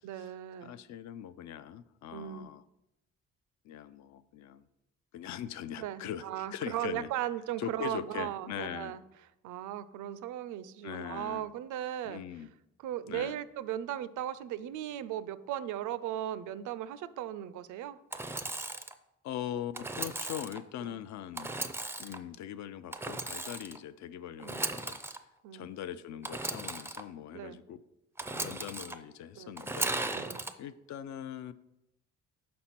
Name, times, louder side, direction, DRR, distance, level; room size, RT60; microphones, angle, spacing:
voice 1, 0.0-0.7 2.1-2.5 5.8-9.0 9.4-12.2 12.8-18.0 24.4-24.6 25.4-25.7 27.3-27.6 29.4-29.6 30.2-30.4, right 11 dB, 75° right, 16 dB, 0.5 m, -37 dB
voice 2, 0.6-2.6 3.6-4.7 5.1-7.1 7.6-9.0 10.8-11.5 12.0-12.5 13.1-13.4 19.2-21.5 22.0-25.0 25.5-27.8 28.3-31.5, left 10 dB, 65° left, 14 dB, 0.5 m, -41 dB
Engine / Sawing, 18.1-18.9 19.7-20.6 21.4-22.2 22.9-23.8 24.4-25.2 26.2-27.0 28.2-29.0 29.6-30.5, right 2 dB, 10° right, 0.4 m, -36 dB
5.2 x 4.3 x 5.8 m, 0.88 s
cardioid pair, 90°, 30 cm